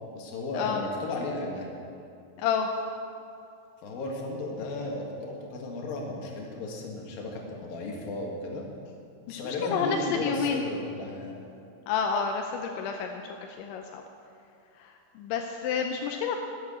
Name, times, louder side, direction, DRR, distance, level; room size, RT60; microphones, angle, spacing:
voice 1, 0.1-1.7 3.8-8.6 9.3-11.3, left 2 dB, 60° left, -1 dB, 3.2 m, -34 dB
voice 2, 2.4-2.7 9.3-10.6 11.9-14.0 14.8-16.4, left 6 dB, 85° left, 3 dB, 3.0 m, -30 dB
12.0 x 9.0 x 8.9 m, 2.6 s
omnidirectional pair, 5.4 m